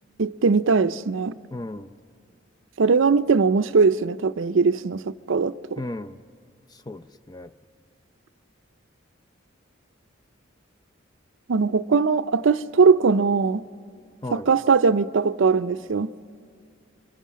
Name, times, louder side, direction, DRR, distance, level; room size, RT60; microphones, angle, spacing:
voice 1, 0.2-1.4 2.8-5.8 11.5-13.6 14.3-16.1, right 4 dB, 70° right, 0.5 m, -20 dB
voice 2, 1.5-1.9 5.8-6.2 6.7-7.5 14.2-14.5, left 1 dB, 20° left, 0.5 m, -35 dB
27.5 x 24.5 x 7.4 m
head